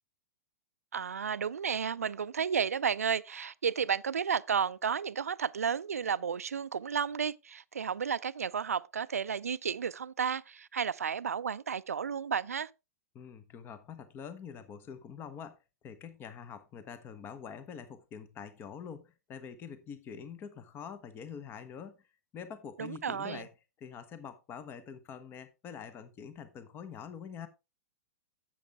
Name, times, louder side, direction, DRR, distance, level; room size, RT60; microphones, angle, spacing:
voice 1, 0.9-12.7 22.8-23.4, right 7 dB, 80° right, 0.4 m, -32 dB
voice 2, 13.1-15.6 15.8-21.9 22.3-23.5 23.8-27.5, left 7 dB, 25° left, 1.1 m, -45 dB
10.0 x 7.8 x 3.5 m
figure-of-eight pair, 105°, 8 cm